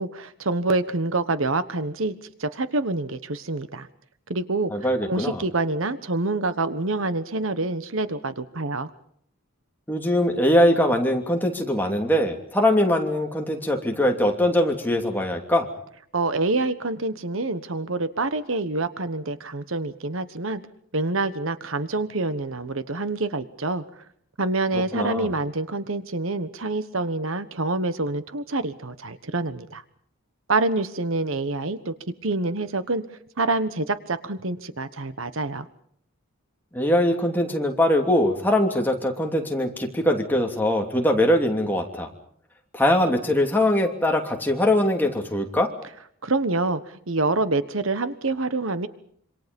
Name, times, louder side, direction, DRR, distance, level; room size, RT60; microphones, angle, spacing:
voice 1, 0.0-2.1 2.4-3.9 4.3-8.9 16.1-20.6 20.9-23.8 24.4-29.8 30.5-31.9 32.2-33.0 33.4-35.7 46.2-48.9, right 2 dB, 70° right, 12 dB, 1.3 m, -26 dB
voice 2, 4.7-5.4 9.9-15.7 24.9-25.3 36.7-42.1 42.7-45.7, left 1 dB, 10° left, 2 dB, 3.0 m, -22 dB
27.0 x 25.5 x 5.4 m, 0.67 s
head